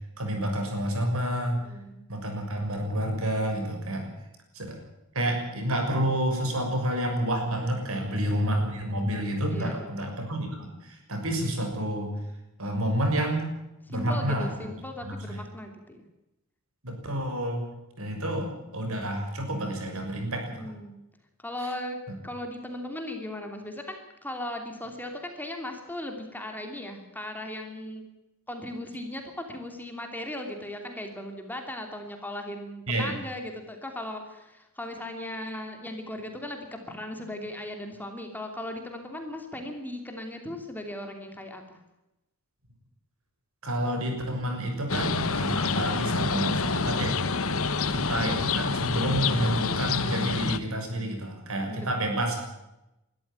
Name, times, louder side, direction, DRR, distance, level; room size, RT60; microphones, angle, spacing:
voice 1, 0.2-1.6 2.1-4.1 4.5-4.8 5.1-12.1 12.6-13.5 13.9-14.7 15.0-15.4 16.8-17.6 18.0-20.7 32.9-33.1 43.6-47.2 47.9-52.4, right 1 dB, 75° right, 3 dB, 6.4 m, -29 dB
voice 2, 1.6-2.1 7.8-8.4 9.5-9.9 13.9-16.0 20.5-21.0 21.4-22.0 22.2-28.0 28.5-41.8 47.6-48.0 51.7-51.8, left 1 dB, 10° left, 4 dB, 2.9 m, -38 dB
sound 1, 44.9-50.6, left 4 dB, 70° left, 1.2 m, -27 dB
22.0 x 13.5 x 9.0 m, 0.92 s
head